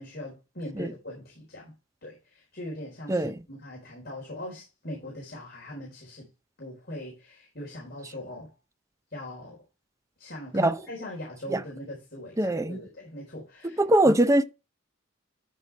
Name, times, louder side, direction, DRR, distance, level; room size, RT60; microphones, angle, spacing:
voice 1, 0.0-1.7 2.0-6.3 6.6-8.5 9.1-9.6 10.2-14.1, left 1 dB, 50° left, 4.3 m, -40 dB
voice 2, 12.4-12.8 13.8-14.4, right 1 dB, 15° right, 0.6 m, -22 dB
13.5 x 5.5 x 3.3 m
head